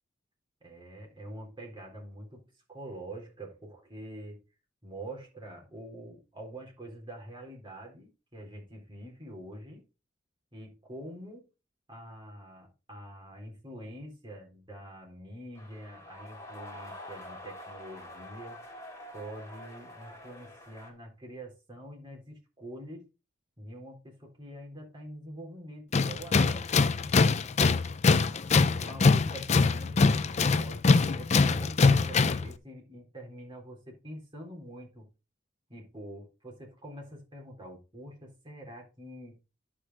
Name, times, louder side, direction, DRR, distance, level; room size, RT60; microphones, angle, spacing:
voice 1, 0.6-4.4 4.8-9.8 10.5-11.5 11.9-18.6 19.1-23.1 23.6-27.0 28.8-30.0 30.5-35.1 35.7-39.4, right 1 dB, 25° right, 3.9 m, -45 dB
sound 1, 15.6-20.9, left 1 dB, 15° left, 3.2 m, -46 dB
Tools, 25.9-32.5, left 4 dB, 40° left, 0.5 m, -23 dB
11.0 x 5.2 x 4.1 m
head